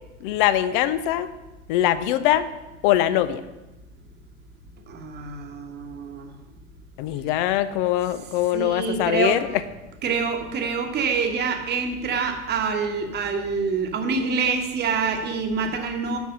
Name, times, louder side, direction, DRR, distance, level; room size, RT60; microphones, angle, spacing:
voice 1, 0.2-1.3 1.7-2.5 2.8-3.4 7.0-9.5, left 13 dB, 45° left, 14 dB, 0.5 m, -22 dB
voice 2, 4.9-6.3 8.5-9.4 10.0-16.2, right 5 dB, 25° right, 4 dB, 1.1 m, -26 dB
7.1 x 6.0 x 5.4 m, 1.0 s
figure-of-eight pair, 80°, 37 cm